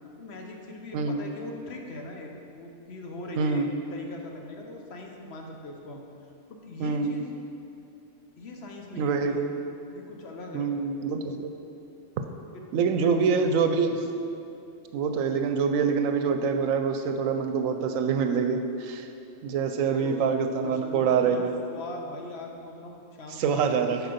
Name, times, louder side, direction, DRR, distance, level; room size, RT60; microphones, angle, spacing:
voice 1, 0.2-3.7 3.9-6.1 6.5-7.3 8.4-9.5 9.9-10.7 12.5-14.1 19.8-20.3 20.6-24.0, left 2 dB, 60° left, 2 dB, 1.0 m, -41 dB
voice 2, 3.4-3.7 6.8-7.2 9.0-9.5 10.5-11.5 12.7-13.9 14.9-19.1 19.4-21.5 23.3-24.0, right 5 dB, 90° right, 6 dB, 1.0 m, -25 dB
7.9 x 5.0 x 5.1 m, 2.6 s
omnidirectional pair, 1.3 m